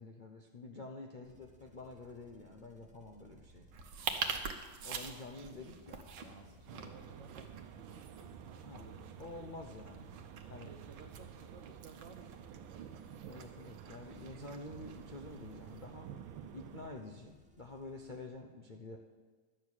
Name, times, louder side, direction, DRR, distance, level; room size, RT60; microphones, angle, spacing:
voice 1, 0.0-3.7 4.8-6.9 8.6-8.9 9.2-10.1 10.5-10.7 13.2-16.1 16.5-19.0, left 2 dB, 70° left, 2 dB, 0.4 m, -49 dB
sound 1, 1.2-18.3, right 1 dB, 5° right, 0.8 m, -61 dB
sound 2, 3.7-15.8, right 6 dB, 70° right, 1.6 m, -46 dB
voice 2, 6.2-9.5 10.4-12.8, right 4 dB, 50° right, 5 dB, 1.0 m, -57 dB
sound 3, 6.7-16.9, right 9 dB, 85° right, 1.4 m, -51 dB
11.5 x 6.3 x 8.6 m, 1.4 s
omnidirectional pair, 2.1 m